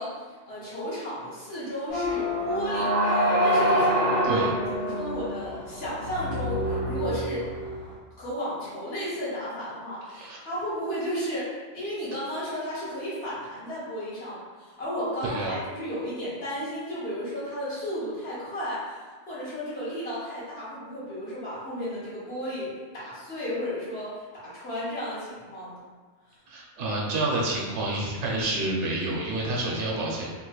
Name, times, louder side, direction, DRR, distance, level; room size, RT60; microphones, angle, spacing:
voice 1, 0.0-7.4 8.2-25.8 26.3-26.4, equal, 60° left, -9 dB, 1.2 m, -33 dB
sound 1, 1.9-7.9, equal, 85° left, 1.4 m, -26 dB
voice 2, 15.2-15.5 26.5-30.2, right 2 dB, 80° right, -3 dB, 1.0 m, -28 dB
3.0 x 3.0 x 2.3 m, 1.4 s
omnidirectional pair, 1.2 m